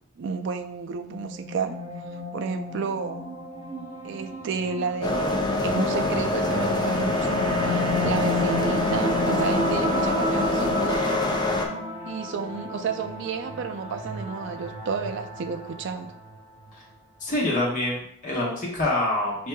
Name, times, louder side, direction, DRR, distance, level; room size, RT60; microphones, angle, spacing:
voice 1, 0.2-1.8 2.3-3.3 4.0-11.2 12.1-16.2, right 5 dB, 60° right, 8 dB, 0.4 m, -31 dB
sound 1, 1.0-16.3, left 1 dB, 35° right, 0.8 m, -33 dB
sound 2, 5.0-11.7, left 2 dB, 20° left, 0.4 m, -25 dB
voice 2, 17.2-19.5, left 1 dB, 40° left, -3 dB, 1.2 m, -26 dB
6.7 x 2.7 x 2.2 m, 0.68 s
head